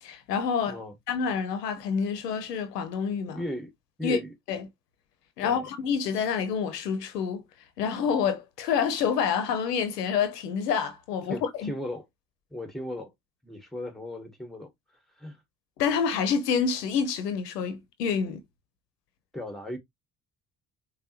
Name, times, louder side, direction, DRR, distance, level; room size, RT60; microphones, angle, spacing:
voice 1, 0.0-0.8 1.1-3.4 4.0-4.2 4.5-4.7 5.4-7.4 7.8-11.7 15.8-18.4, left 6 dB, 85° left, 0.7 m, -27 dB
voice 2, 3.3-3.7 4.0-4.3 5.4-5.7 11.3-12.1 12.5-13.1 13.4-14.7 15.2-15.4 19.3-19.8, left 1 dB, ahead, 1.7 m, -36 dB
5.2 x 2.1 x 2.8 m
figure-of-eight pair, 50°, 47 cm